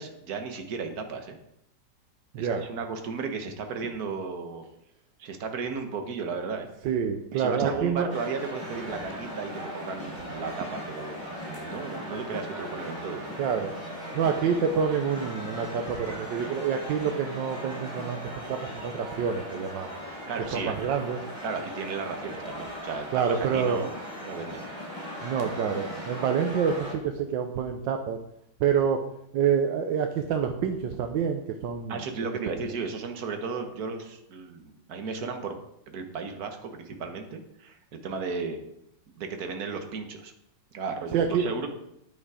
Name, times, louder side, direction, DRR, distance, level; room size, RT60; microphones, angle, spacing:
voice 1, 0.0-1.4 2.4-4.6 5.2-6.7 7.3-13.4 20.3-20.7 21.4-23.1 23.4-23.9 24.2-24.6 31.9-35.6 35.9-38.6 39.2-40.3 40.7-41.7, right 5 dB, 55° right, 5 dB, 1.7 m, -34 dB
voice 2, 2.3-2.7 6.8-8.1 10.6-10.7 13.4-13.7 14.1-19.9 20.5-21.2 23.1-23.8 25.2-28.2 28.6-29.0 29.3-32.0 32.5-32.6 41.1-41.5, right 7 dB, 85° right, 5 dB, 1.5 m, -27 dB
sound 1, 8.1-26.9, equal, 30° right, 4.4 m, -38 dB
9.6 x 8.7 x 4.9 m, 0.76 s
omnidirectional pair, 2.0 m